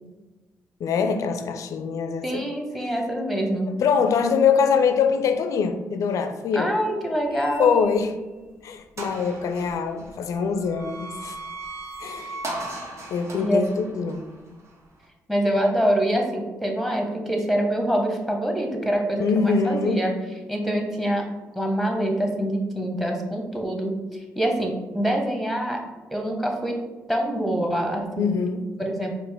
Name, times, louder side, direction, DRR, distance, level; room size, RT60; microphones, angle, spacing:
voice 1, 0.8-2.4 3.8-6.8 7.6-8.1 8.6-11.4 12.0-12.3 13.1-14.2 19.2-20.0 28.2-28.6, left 6 dB, 65° left, 8 dB, 0.4 m, -23 dB
voice 2, 2.2-3.7 6.5-7.8 12.2-12.3 13.4-13.7 15.3-20.1 20.5-21.3 21.5-25.8 26.1-26.8 27.1-28.4 28.8-29.2, equal, ahead, 2 dB, 0.9 m, -25 dB
sound 1, 7.3-8.2 8.6-8.7 9.0-15.1, right 2 dB, 50° right, 0.8 m, -38 dB
4.3 x 2.5 x 3.4 m, 1.2 s
supercardioid pair, 55°, 6 cm